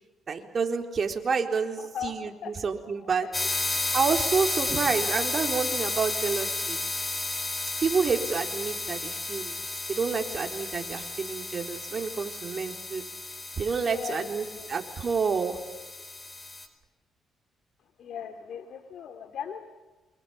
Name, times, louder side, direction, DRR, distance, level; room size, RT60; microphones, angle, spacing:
voice 1, 0.3-3.3 3.9-6.8 7.8-9.6 9.9-13.0 13.6-14.4 14.7-15.6, right 5 dB, 45° right, 4 dB, 4.0 m, -29 dB
voice 2, 1.8-2.5 2.8-4.0 13.8-14.8 17.8-19.6, left 8 dB, 70° left, 7 dB, 2.5 m, -40 dB
sound 1, 3.3-16.7, left 2 dB, 25° left, 4.8 m, -32 dB
28.5 x 25.5 x 7.1 m, 1.2 s
cardioid pair, 90°, 0 cm